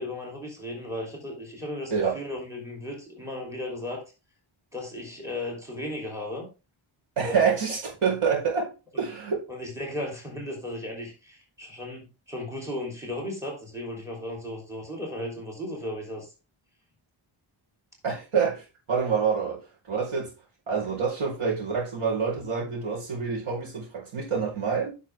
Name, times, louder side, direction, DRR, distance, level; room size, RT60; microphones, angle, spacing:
voice 1, 0.0-4.0 4.7-6.5 7.3-7.4 9.5-16.3, left 1 dB, 5° right, 3.6 m, -35 dB
voice 2, 7.2-8.7 9.0-9.4 18.0-19.6 19.9-20.3 20.7-24.9, right 6 dB, 85° right, 5.1 m, -27 dB
9.7 x 6.6 x 3.7 m
wide cardioid pair, 140°, 49 cm